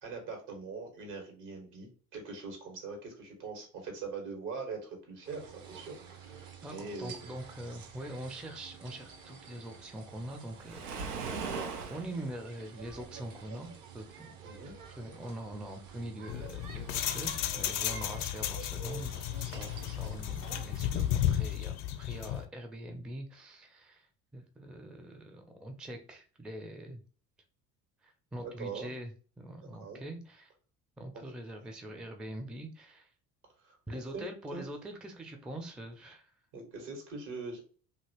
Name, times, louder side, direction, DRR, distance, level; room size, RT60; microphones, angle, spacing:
voice 1, 0.0-7.3 14.4-14.7 28.4-28.9 29.8-30.0 33.6-33.8 34.1-34.2 34.5-34.6 36.5-37.6, right 4 dB, 65° right, 2 dB, 1.6 m, -42 dB
sound 1, 5.2-21.4, right 6 dB, 45° right, 0.9 m, -50 dB
voice 2, 6.6-11.4 11.9-14.4 14.9-27.0 28.0-29.1 29.4-30.5 31.0-33.1 33.9-36.3, right 1 dB, ahead, 5 dB, 0.5 m, -43 dB
Waves surf, 10.6-12.1, right 5 dB, 90° right, 0.6 m, -37 dB
sound 2, 16.3-22.4, left 11 dB, 55° left, 0.6 m, -33 dB
2.8 x 2.8 x 2.9 m, 0.40 s
hypercardioid pair, 60°, 45 cm